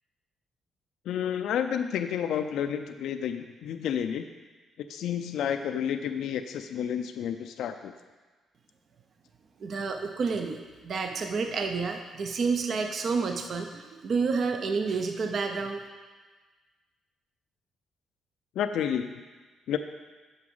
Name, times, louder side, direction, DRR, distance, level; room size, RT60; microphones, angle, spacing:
voice 1, 1.1-4.3 4.9-7.9 18.6-19.1 19.7-19.8, left 9 dB, 80° left, 8 dB, 0.4 m, -30 dB
voice 2, 9.6-15.8, right 4 dB, 55° right, 5 dB, 0.7 m, -29 dB
7.8 x 6.0 x 5.5 m, 1.3 s
cardioid pair, 90°, 0 cm